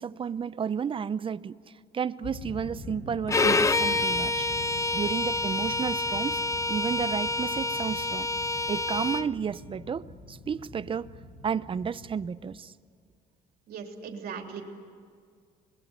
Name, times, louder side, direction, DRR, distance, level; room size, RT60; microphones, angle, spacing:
voice 1, 0.0-1.6 1.9-4.5 4.9-6.4 6.7-8.3 8.7-11.1 11.4-12.7, right 7 dB, 30° right, 0.7 m, -32 dB
sound 1, 2.2-12.3, left 2 dB, 70° left, 4.6 m, -44 dB
Bowed string instrument, 3.3-9.3, left 2 dB, 20° left, 0.7 m, -27 dB
voice 2, 13.7-14.6, right 6 dB, 65° right, 3.4 m, -38 dB
25.5 x 20.5 x 9.7 m
cardioid pair, 110°, 17 cm